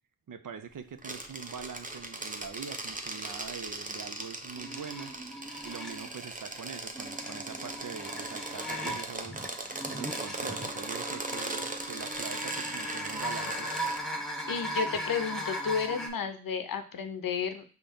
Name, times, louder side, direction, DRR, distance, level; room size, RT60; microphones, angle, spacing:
voice 1, 0.3-5.1 5.6-9.5 9.9-13.7, right 6 dB, 70° right, 10 dB, 0.6 m, -43 dB
sound 1, 1.0-14.0, right 2 dB, 25° right, 0.6 m, -39 dB
sound 2, 4.5-6.1 6.8-16.1, equal, ahead, 0.9 m, -38 dB
voice 2, 14.5-17.6, left 6 dB, 80° left, 8 dB, 0.6 m, -32 dB
5.4 x 2.9 x 3.4 m, 0.40 s
wide cardioid pair, 55°, 34 cm